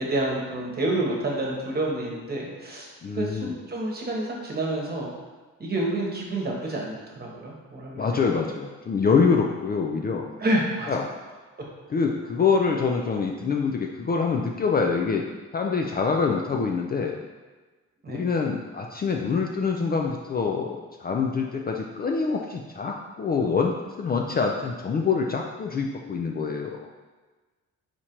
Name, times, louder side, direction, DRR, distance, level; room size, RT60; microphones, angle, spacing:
voice 1, 0.0-2.9 3.1-5.1 5.6-8.1 8.3-8.5 10.4-10.9 18.0-18.3, right 1 dB, 30° right, -2 dB, 1.2 m, -28 dB
voice 2, 3.0-3.6 7.9-10.3 10.9-11.0 11.9-15.2 15.5-17.2 18.1-26.9, left 5 dB, 30° left, 1 dB, 0.4 m, -25 dB
4.3 x 2.5 x 4.4 m, 1.3 s
cardioid pair, 90°, 30 cm